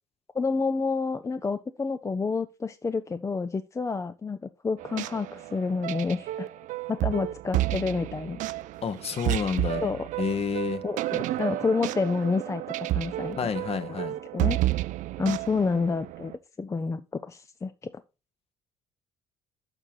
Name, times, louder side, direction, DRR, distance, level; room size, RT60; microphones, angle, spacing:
voice 1, 0.3-6.5 6.9-8.4 9.8-10.0 10.8-13.4 13.9-14.0 14.3-14.6 15.2-16.3 16.6-17.9, left 4 dB, 20° left, 0.5 m, -29 dB
sound 1, 4.8-16.4, right 16 dB, 60° right, 0.5 m, -31 dB
voice 2, 8.8-9.8 10.2-10.8 13.3-14.1, left 6 dB, 40° left, 1.0 m, -29 dB
6.8 x 5.8 x 4.4 m
hypercardioid pair, 55°, 15 cm